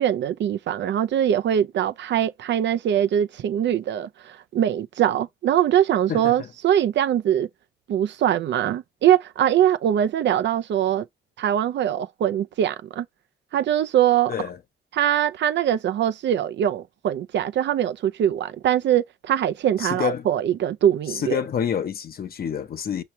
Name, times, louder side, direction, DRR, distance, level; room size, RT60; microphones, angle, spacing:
voice 1, 0.0-7.5 7.9-11.0 11.4-13.1 13.5-14.3 14.9-21.4, right 10 dB, 65° right, 0.6 m, -22 dB
voice 2, 6.1-6.5 14.3-14.6 19.8-20.3 21.1-23.0, left 8 dB, 50° left, 0.9 m, -28 dB
5.7 x 2.9 x 3.1 m
cardioid pair, 90°, 20 cm